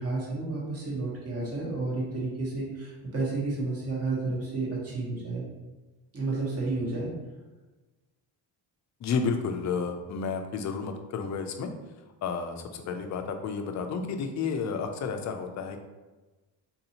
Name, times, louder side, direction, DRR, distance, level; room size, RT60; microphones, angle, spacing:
voice 1, 0.0-5.4 6.1-7.1, right 3 dB, 30° right, -4 dB, 1.1 m, -31 dB
voice 2, 9.0-11.7 12.2-15.8, left 5 dB, 40° left, 5 dB, 0.4 m, -31 dB
4.0 x 2.6 x 2.8 m, 1.2 s
cardioid pair, 130°, 46 cm